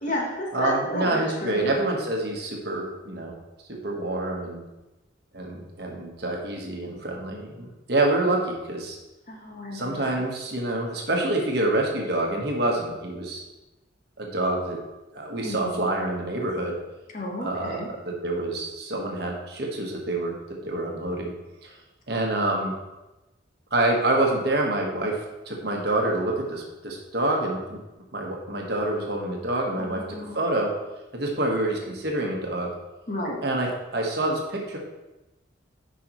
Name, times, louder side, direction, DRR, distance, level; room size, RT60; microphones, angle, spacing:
voice 1, 0.0-1.7 9.3-10.2 15.4-15.8 17.1-17.9 29.8-30.4 33.1-33.4, left 1 dB, 40° left, -1 dB, 1.2 m, -32 dB
voice 2, 0.5-3.3 3.7-4.6 5.3-9.0 9.7-13.4 14.2-14.8 15.1-16.8 17.4-20.3 20.6-21.3 21.6-21.7 22.1-22.7 23.7-25.1 25.5-27.8 28.1-30.0 30.3-30.7 31.1-32.7 33.4-34.8, right 2 dB, 55° right, 0 dB, 1.2 m, -27 dB
9.3 x 5.1 x 3.0 m, 1.0 s
head